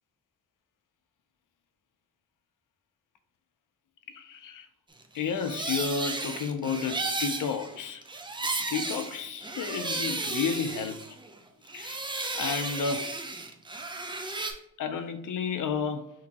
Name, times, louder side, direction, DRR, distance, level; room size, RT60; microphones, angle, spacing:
voice 1, 4.1-4.7 5.1-8.0 8.7-11.2 11.7-12.0 12.3-13.1 14.8-16.1, left 6 dB, 70° left, 0.5 m, -32 dB
sound 1, 5.2-11.4 11.7-14.5, right 3 dB, 15° right, 0.5 m, -34 dB
6.1 x 2.7 x 2.9 m
wide cardioid pair, 120°, 33 cm